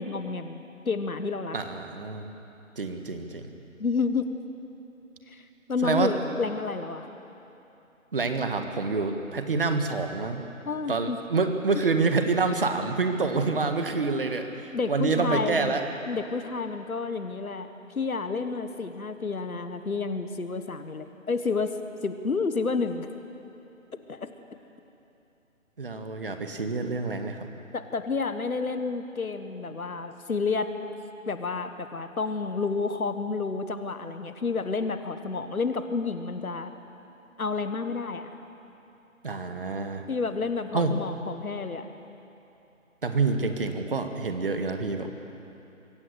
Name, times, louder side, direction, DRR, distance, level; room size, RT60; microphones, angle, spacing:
voice 1, 0.0-1.6 3.8-4.3 5.3-7.1 10.7-11.2 14.7-15.7 16.1-17.7 17.9-21.7 22.0-23.1 24.1-24.3 27.7-30.7 31.3-36.7 37.4-38.3 40.1-41.9, left 4 dB, 90° left, 9 dB, 1.6 m, -30 dB
voice 2, 1.5-2.3 2.7-3.5 5.8-6.4 8.1-10.4 10.9-15.8 25.8-27.5 39.2-40.1 40.7-40.9 43.0-45.1, right 4 dB, 40° right, 6 dB, 1.7 m, -27 dB
24.0 x 17.0 x 8.1 m, 3.0 s
figure-of-eight pair, 170°, 41 cm